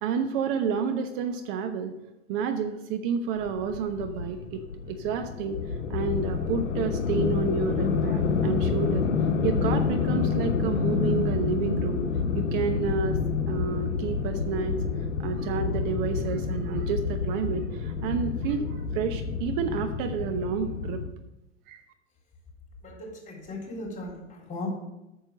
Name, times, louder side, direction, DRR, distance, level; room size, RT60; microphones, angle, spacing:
voice 1, 0.0-1.9 2.3-4.6 4.9-5.6 5.9-9.0 9.4-12.1 12.3-13.2 13.5-14.8 15.2-21.0 21.7-21.8, right 6 dB, 50° right, 7 dB, 1.0 m, -30 dB
sound 1, 3.4-21.1, left 5 dB, 85° left, 0.9 m, -28 dB
voice 2, 22.8-24.7, left 2 dB, 20° left, 0 dB, 4.0 m, -38 dB
8.9 x 6.7 x 6.6 m, 0.95 s
figure-of-eight pair, 85°, 35 cm